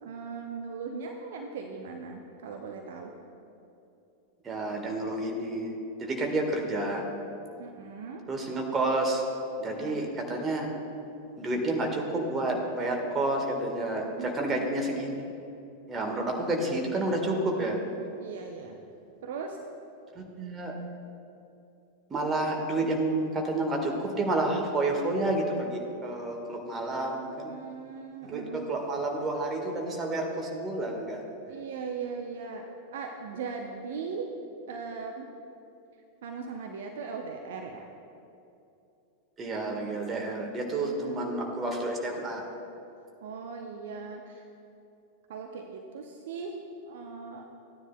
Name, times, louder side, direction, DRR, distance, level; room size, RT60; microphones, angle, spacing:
voice 1, 0.0-3.1 7.6-8.3 9.7-10.0 14.2-14.7 18.2-18.8 19.2-19.6 27.5-28.7 31.5-32.6 32.9-34.3 34.7-35.3 36.2-37.9 40.7-41.2 43.2-44.4 45.3-46.6 46.9-47.5, right 5 dB, 55° right, 3 dB, 0.6 m, -39 dB
voice 2, 4.4-7.0 8.3-9.2 9.6-10.7 11.4-15.2 15.9-17.8 20.1-20.7 22.1-27.5 28.2-31.3 39.4-42.4, right 2 dB, 20° right, 1 dB, 1.4 m, -30 dB
15.0 x 9.9 x 2.2 m, 2.7 s
figure-of-eight pair, 90°, 0 cm